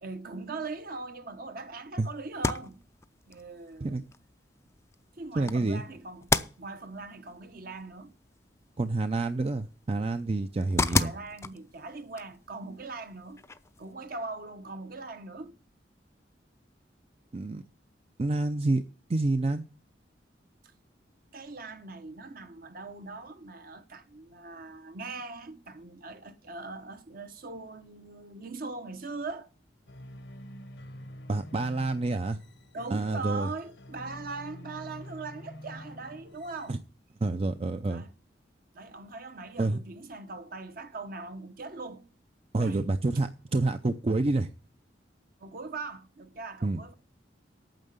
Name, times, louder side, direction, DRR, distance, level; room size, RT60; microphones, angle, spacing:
voice 1, 0.0-2.8 3.3-4.0 5.2-6.3 6.6-8.1 10.9-13.4 13.8-15.5 21.3-29.5 32.7-36.8 37.8-38.1 38.7-42.1 42.5-42.8 45.4-46.9, right 3 dB, 55° right, 1.0 m, -41 dB
sound 1, 2.3-13.9, left 3 dB, 15° left, 0.4 m, -35 dB
voice 2, 5.4-5.8 8.8-11.1 17.3-17.6 18.2-18.8 19.1-19.6 31.3-32.4 32.9-33.5 36.7-36.8 37.2-38.0 39.6-39.8 42.5-44.5 46.6-46.8, right 2 dB, 35° right, 0.5 m, -28 dB
sound 2, 29.9-36.7, equal, 75° left, 1.0 m, -47 dB
9.0 x 6.5 x 8.0 m
head